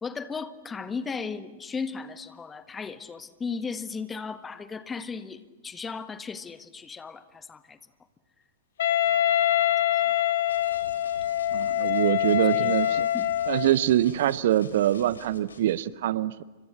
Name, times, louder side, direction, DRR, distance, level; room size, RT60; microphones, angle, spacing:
voice 1, 0.0-7.8 9.2-9.4 12.4-12.8 13.1-13.2, left 5 dB, 15° left, 11 dB, 1.5 m, -36 dB
Wind instrument woodwind instrument, 8.8-13.8, left 12 dB, 55° left, 1.2 m, -24 dB
sound 1, 10.5-15.8, left 4 dB, 70° left, 3.6 m, -48 dB
voice 2, 11.5-13.1 13.5-16.4, right 12 dB, 55° right, 19 dB, 0.7 m, -24 dB
30.0 x 25.5 x 6.6 m, 1.2 s
figure-of-eight pair, 105°, 0 cm